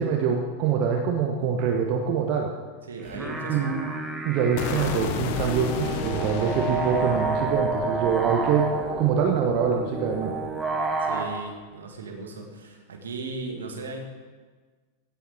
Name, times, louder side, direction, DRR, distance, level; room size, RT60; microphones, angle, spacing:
voice 1, 0.0-2.5 3.5-3.9 4.2-10.3, right 7 dB, 40° right, 2 dB, 1.0 m, -25 dB
voice 2, 2.9-3.8 11.0-14.0, right 3 dB, 70° right, 2 dB, 1.8 m, -37 dB
sound 1, 3.0-11.3, right 3 dB, 10° right, 1.5 m, -30 dB
sound 2, 4.6-10.6, left 7 dB, 45° left, 0.9 m, -33 dB
16.5 x 7.0 x 4.6 m, 1.4 s
figure-of-eight pair, 90°, 0 cm